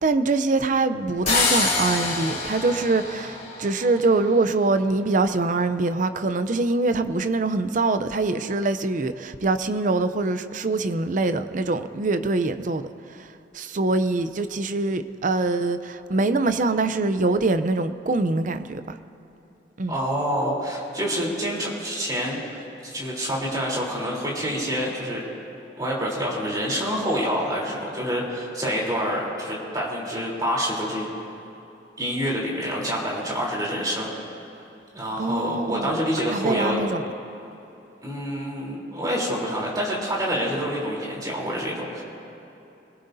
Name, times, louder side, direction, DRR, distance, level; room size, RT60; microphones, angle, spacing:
voice 1, 0.0-13.3 13.5-19.0 19.8-19.9 35.2-35.9 36.3-37.0, right 3 dB, 45° right, 0.6 m, -24 dB
sound 1, 1.3-4.1, left 3 dB, 40° left, 4.6 m, -26 dB
voice 2, 19.9-25.2 25.8-31.1 32.0-34.1 34.9-36.8 38.0-42.0, equal, 20° right, 3.5 m, -27 dB
25.5 x 18.0 x 2.7 m
head